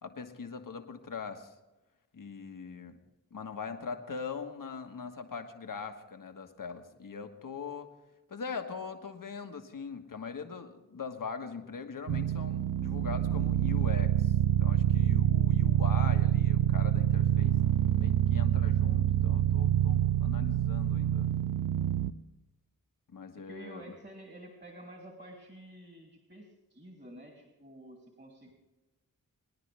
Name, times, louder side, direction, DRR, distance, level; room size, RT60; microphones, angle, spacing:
voice 1, 0.0-1.5 2.1-3.0 3.3-7.9 8.3-17.6 17.9-21.3 23.1-23.8, left 5 dB, 65° left, 6 dB, 1.5 m, -41 dB
sound 1, 12.1-22.1, right 12 dB, 65° right, 0.5 m, -26 dB
voice 2, 23.5-28.5, right 1 dB, 30° right, 1 dB, 2.7 m, -50 dB
24.0 x 10.0 x 3.4 m, 1.0 s
cardioid pair, 40°, 35 cm